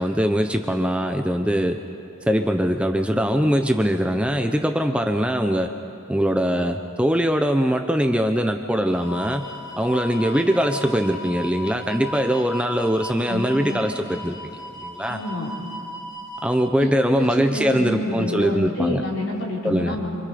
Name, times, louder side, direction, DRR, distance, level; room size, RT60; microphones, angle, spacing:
voice 1, 0.0-1.8 2.3-5.7 6.1-9.5 9.8-15.2 16.4-19.0 19.6-20.0, equal, 5° right, 5 dB, 0.7 m, -22 dB
sound 1, 8.9-16.5, left 1 dB, 20° left, 5.5 m, -36 dB
voice 2, 13.3-13.8 15.1-15.5 16.8-20.1, left 1 dB, 65° left, -4 dB, 5.0 m, -28 dB
27.0 x 26.5 x 5.1 m, 2.6 s
head